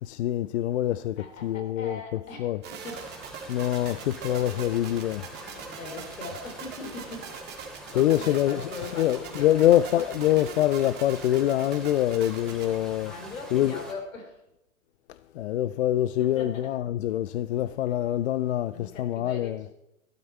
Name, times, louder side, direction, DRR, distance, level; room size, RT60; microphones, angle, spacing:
voice 1, 0.0-2.0 2.4-2.6 3.5-5.3 8.0-8.6 9.0-13.1 13.5-13.8 15.4-19.6, left 13 dB, 55° left, 0.5 m, -25 dB
voice 2, 1.2-3.2 3.8-4.0 5.4-7.3 7.9-10.0 12.7-12.8 13.0-14.4 16.2-16.7 18.7-19.7, left 3 dB, 75° left, 3.3 m, -40 dB
sound 1, 2.6-12.8, right 7 dB, 25° right, 1.9 m, -41 dB
sound 2, 2.8-13.9, right 1 dB, ahead, 2.7 m, -45 dB
12.5 x 12.0 x 4.3 m
hypercardioid pair, 125°, 40 cm